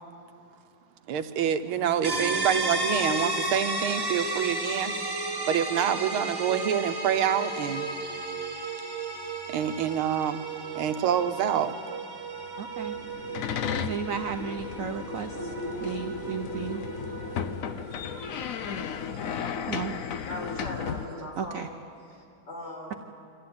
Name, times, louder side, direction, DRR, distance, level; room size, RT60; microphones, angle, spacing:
voice 1, 1.1-5.1 5.5-7.9 9.5-10.5 10.8-11.7, right 9 dB, 85° right, 9 dB, 1.7 m, -27 dB
sound 1, 2.0-17.6, right 2 dB, 15° right, 1.0 m, -33 dB
voice 2, 12.6-13.0 13.7-15.5 15.8-16.8 19.7-19.9 21.4-21.7, right 7 dB, 70° right, 6 dB, 0.8 m, -34 dB
sound 2, 12.8-21.1, left 7 dB, 90° left, 0.7 m, -34 dB
sound 3, 15.3-21.3, right 2 dB, 40° right, 1.7 m, -41 dB
voice 3, 20.3-21.7 22.1-23.0, left 1 dB, 60° left, -2 dB, 5.3 m, -40 dB
25.0 x 14.0 x 9.5 m, 2.6 s
omnidirectional pair, 2.3 m